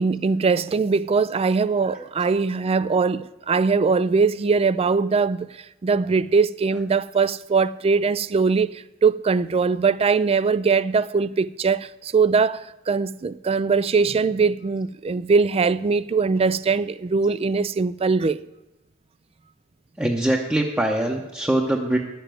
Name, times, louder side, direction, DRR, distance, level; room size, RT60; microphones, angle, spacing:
voice 1, 0.0-5.5 5.8-8.7 9.0-18.4, right 4 dB, 30° right, 0.4 m, -21 dB
voice 2, 20.0-22.0, right 1 dB, 5° right, 0.8 m, -22 dB
10.5 x 7.0 x 9.0 m
head